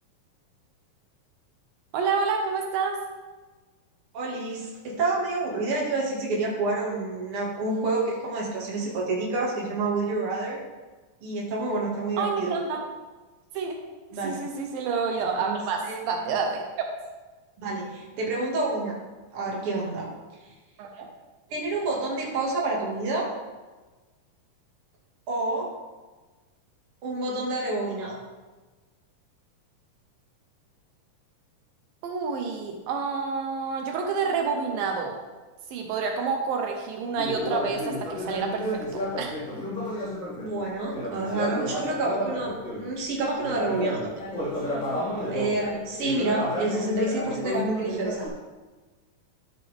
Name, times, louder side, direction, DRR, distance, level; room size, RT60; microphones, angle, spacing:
voice 1, 1.9-3.0 12.2-12.8 13.5-13.8 14.2-16.9 20.8-21.1 32.0-35.2 35.7-39.3, right 5 dB, 80° right, 2 dB, 2.7 m, -28 dB
voice 2, 4.1-10.6 11.2-12.5 14.1-14.4 15.4-16.0 17.6-19.0 19.3-20.1 21.5-23.3 25.3-25.7 27.0-28.2 40.4-44.1 45.1-48.3, right 2 dB, 45° right, -3 dB, 2.7 m, -28 dB
Conversation, 37.1-42.9 43.4-48.3, left 1 dB, 30° left, 3.2 m, -31 dB
12.0 x 7.6 x 3.6 m, 1.3 s
omnidirectional pair, 4.0 m